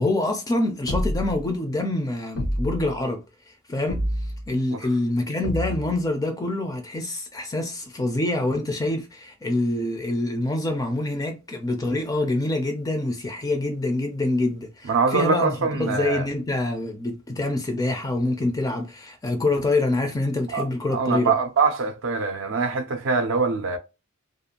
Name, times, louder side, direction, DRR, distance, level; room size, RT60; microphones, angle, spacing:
voice 1, 0.0-3.2 3.7-4.1 4.5-21.3, left 2 dB, 15° left, 0.3 m, -26 dB
sound 1, 0.9-1.5 2.4-3.0 3.9-4.5 5.4-6.0, left 1 dB, 70° left, 0.7 m, -28 dB
voice 2, 14.9-16.3 20.5-20.6 20.9-23.8, right 4 dB, 60° right, 0.4 m, -23 dB
2.5 x 2.3 x 2.8 m
head